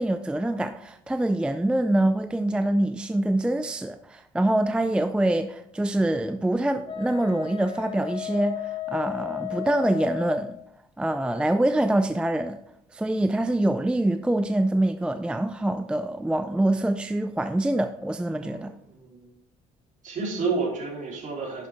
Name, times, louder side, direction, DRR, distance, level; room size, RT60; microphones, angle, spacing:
voice 1, 0.0-8.6 8.9-10.5 11.0-12.6 12.9-18.7, right 1 dB, 5° right, 0.4 m, -25 dB
Wind instrument woodwind instrument, 6.9-10.5, left 14 dB, 35° left, 2.2 m, -34 dB
voice 2, 18.4-19.3 20.0-21.7, right 4 dB, 50° right, 3.5 m, -31 dB
10.5 x 6.8 x 3.5 m
cardioid pair, 110°, 17 cm